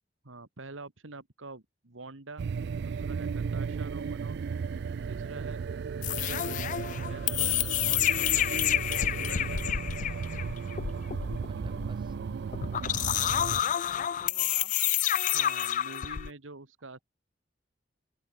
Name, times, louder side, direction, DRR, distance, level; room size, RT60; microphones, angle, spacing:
voice 1, 0.2-2.5 2.8-4.4 4.7-4.8 5.1-5.6 6.1-6.6 7.1-9.9 15.3-17.0, right 3 dB, 90° right, 1.9 m, -46 dB
sound 1, 2.4-13.6, right 6 dB, 55° right, 0.3 m, -35 dB
sound 2, 4.4-13.5, left 1 dB, 70° left, 4.1 m, -61 dB
sound 3, 6.0-16.3, left 11 dB, 40° left, 0.3 m, -29 dB
voice 2, 11.5-12.2 12.6-14.8, right 2 dB, 25° right, 6.7 m, -56 dB
head